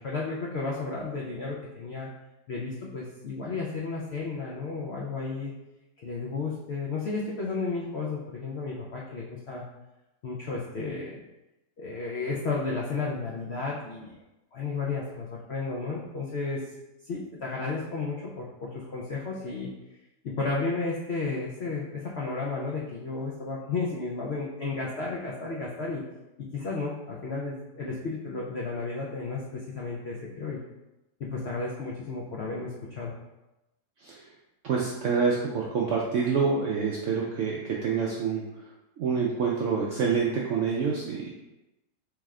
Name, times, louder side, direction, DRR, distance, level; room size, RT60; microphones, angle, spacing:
voice 1, 0.0-2.1 2.5-5.5 6.0-9.6 10.2-11.2 11.8-14.2 14.5-16.6 17.0-19.7 20.2-26.0 26.5-30.6 31.2-33.1, left 3 dB, 80° left, -4 dB, 0.5 m, -33 dB
voice 2, 34.0-34.3 34.6-41.3, right 5 dB, 75° right, -3 dB, 0.7 m, -27 dB
3.5 x 3.2 x 3.5 m, 0.97 s
omnidirectional pair, 1.8 m